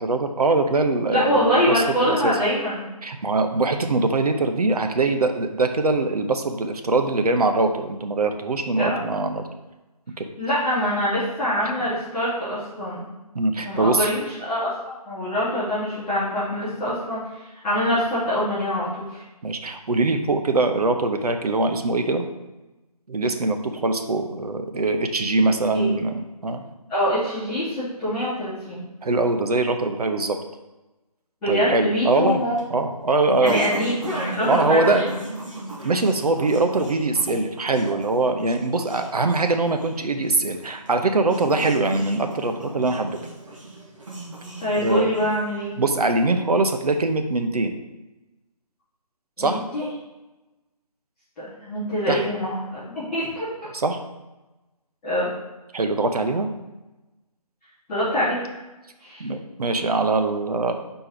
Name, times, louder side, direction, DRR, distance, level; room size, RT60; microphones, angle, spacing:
voice 1, 0.0-2.3 3.0-9.4 10.2-10.3 13.3-14.1 19.4-22.2 23.1-26.7 29.0-30.4 31.5-32.4 32.7-33.7 34.5-35.0 35.8-43.2 44.8-45.1 45.8-47.7 49.4-49.6 52.1-52.2 53.7-54.0 55.7-56.5 59.2-60.7, right 3 dB, 70° right, 6 dB, 0.7 m, -22 dB
voice 2, 1.1-2.9 8.8-9.0 10.4-13.0 13.6-19.2 25.7-25.9 26.9-28.8 31.4-32.5 33.4-35.1 44.6-45.7 49.4-49.8 51.4-53.5 55.0-55.3 57.9-58.4 59.0-59.3, equal, ahead, -21 dB, 0.7 m, -24 dB
sound 1, 32.1-45.7, right 2 dB, 50° right, 1.5 m, -35 dB
4.5 x 4.4 x 5.0 m, 1.1 s
hypercardioid pair, 175°, 20 cm